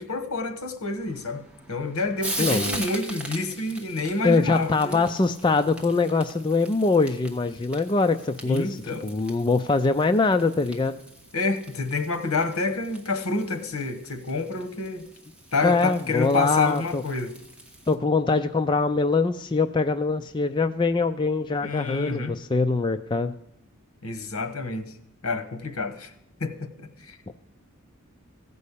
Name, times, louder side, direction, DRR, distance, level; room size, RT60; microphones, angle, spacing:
voice 1, 0.0-5.0 8.4-9.1 11.3-15.1 15.5-17.3 21.6-22.4 24.0-24.9 25.2-26.1 26.4-27.2, left 3 dB, 75° left, 9 dB, 1.2 m, -28 dB
Frying (food), 1.0-18.0, right 1 dB, 5° right, 1.2 m, -40 dB
voice 2, 2.4-2.8 4.2-8.7 9.0-11.0 15.6-17.0 17.9-23.3, left 3 dB, 20° left, 7 dB, 0.4 m, -23 dB
15.5 x 5.4 x 8.4 m, 0.80 s
head